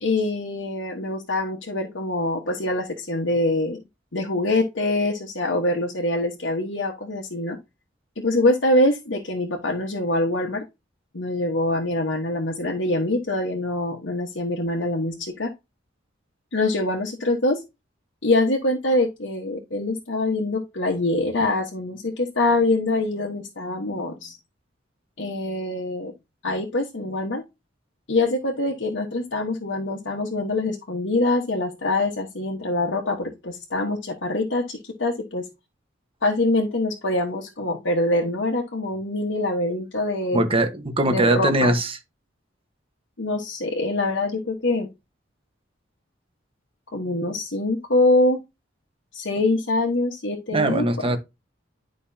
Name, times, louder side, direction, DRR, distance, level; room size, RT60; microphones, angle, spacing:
voice 1, 0.0-3.8 4.1-7.6 8.2-10.6 11.1-15.5 16.5-17.6 18.2-24.4 25.2-26.1 26.4-27.4 28.1-35.5 36.2-40.4 41.1-41.8 43.2-44.9 46.9-48.4 49.1-51.1, left 2 dB, 70° left, 1.4 m, -24 dB
voice 2, 40.3-42.0 50.5-51.2, right 1 dB, 30° right, 1.3 m, -21 dB
11.0 x 5.3 x 2.8 m
head